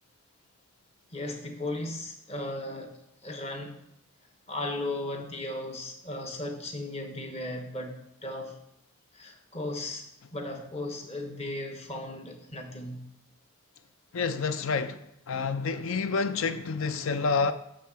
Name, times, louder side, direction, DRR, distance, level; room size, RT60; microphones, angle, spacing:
voice 1, 1.1-3.8 4.5-8.6 9.1-13.0, left 1 dB, 30° left, 1.0 m, -36 dB
voice 2, 14.1-15.0 15.3-17.5, left 4 dB, 60° left, 0.5 m, -28 dB
8.5 x 3.7 x 6.1 m
head